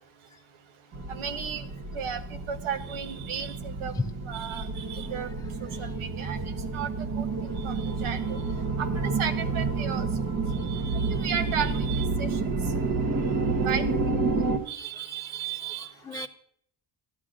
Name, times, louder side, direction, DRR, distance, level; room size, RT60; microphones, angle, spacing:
sound 1, 0.9-14.6, right 4 dB, 40° right, 1.1 m, -29 dB
voice 1, 1.1-1.7 1.9-2.2 2.5-3.9 4.3-5.3 5.8-6.4 6.7-6.9 7.2-8.4 8.8-10.1 10.6-12.4 13.6-13.9 14.7-16.3, right 7 dB, 85° right, 9 dB, 1.1 m, -34 dB
voice 2, 5.4-5.9 7.3-7.6 13.8-14.2 14.9-15.1 15.6-16.3, left 3 dB, 10° left, 6 dB, 0.4 m, -38 dB
13.5 x 10.5 x 2.5 m, 0.65 s
cardioid pair, 110°, 48 cm